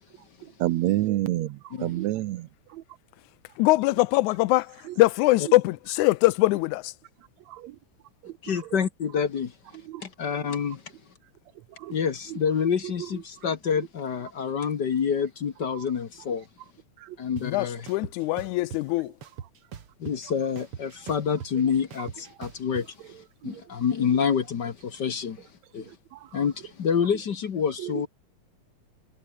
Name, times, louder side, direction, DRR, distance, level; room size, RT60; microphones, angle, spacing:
voice 1, 0.4-2.8 4.8-5.0 5.5-5.6 7.2-7.8 8.2-8.8 9.7-10.1 11.6-12.0 12.3-12.4 12.8-13.5 15.7-15.9 17.0-17.2 19.0-19.1 19.4-19.5 21.0-21.1 21.5-21.7 22.0-22.1 23.0-23.6 25.8-26.4 27.8-28.1, right 15 dB, 75° right, 2.0 m, -32 dB
voice 2, 3.6-6.9 17.4-19.1, left 20 dB, 90° left, 2.0 m, -22 dB
voice 3, 8.4-9.5 10.0-10.8 11.9-16.5 17.2-17.9 20.0-22.9 23.4-25.4 25.7-25.9 26.3-28.1, left 7 dB, 50° left, 1.5 m, -27 dB
sound 1, 17.4-17.5 17.9-18.8 19.2-20.3 20.6-22.8, right 8 dB, 50° right, 2.6 m, -40 dB
omnidirectional pair, 3.3 m